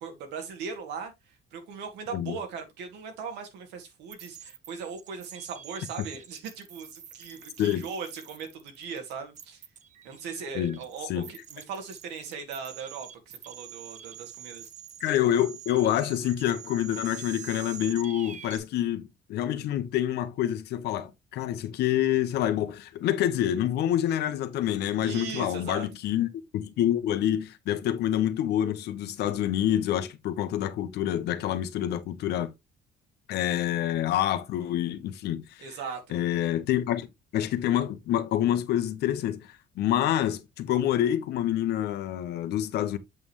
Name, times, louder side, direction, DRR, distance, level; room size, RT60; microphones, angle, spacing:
voice 1, 0.0-9.6 10.0-14.7 25.0-25.9 35.6-36.2, right 5 dB, 85° right, 2.6 m, -39 dB
sound 1, 4.1-18.6, right 9 dB, 45° right, 1.1 m, -45 dB
voice 2, 15.0-26.3 26.5-32.5 33.3-35.4 36.1-37.1 37.3-39.5 39.8-43.0, left 11 dB, 75° left, 1.2 m, -27 dB
8.0 x 5.5 x 3.2 m
cardioid pair, 110°, 17 cm